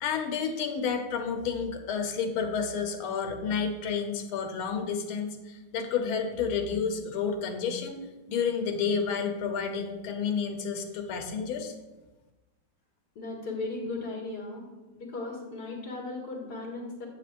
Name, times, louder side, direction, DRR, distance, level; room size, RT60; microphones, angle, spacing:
voice 1, 0.0-8.0 8.3-11.7, left 6 dB, 85° left, 5 dB, 1.7 m, -30 dB
voice 2, 13.2-14.6 15.0-17.1, left 3 dB, 50° left, -4 dB, 2.4 m, -36 dB
9.4 x 8.5 x 2.5 m, 1.1 s
omnidirectional pair, 2.2 m